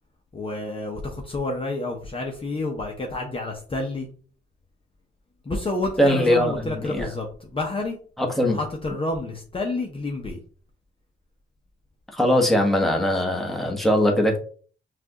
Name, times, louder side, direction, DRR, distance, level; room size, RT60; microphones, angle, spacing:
voice 1, 0.3-4.1 5.4-8.0 8.5-10.4, left 2 dB, 25° left, 1 dB, 0.9 m, -29 dB
voice 2, 6.0-6.5 6.8-7.1 8.2-8.6 12.1-14.4, left 1 dB, ahead, 0 dB, 1.2 m, -20 dB
5.9 x 2.5 x 2.9 m, 0.43 s
cardioid pair, 90°, 20 cm